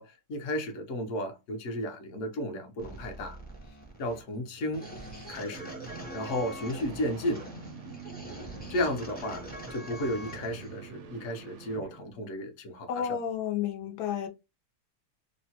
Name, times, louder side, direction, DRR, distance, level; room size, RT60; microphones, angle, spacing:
voice 1, 0.0-3.4 4.0-4.9 5.3-5.7 6.1-7.5 8.7-13.2, left 1 dB, 60° left, 0.9 m, -33 dB
sound 1, 2.8-10.7, right 1 dB, 15° left, 0.3 m, -44 dB
sound 2, 4.4-12.2, right 5 dB, 70° right, 0.7 m, -47 dB
voice 2, 12.9-14.3, left 8 dB, 85° left, 1.2 m, -31 dB
3.0 x 2.1 x 2.7 m
omnidirectional pair, 1.7 m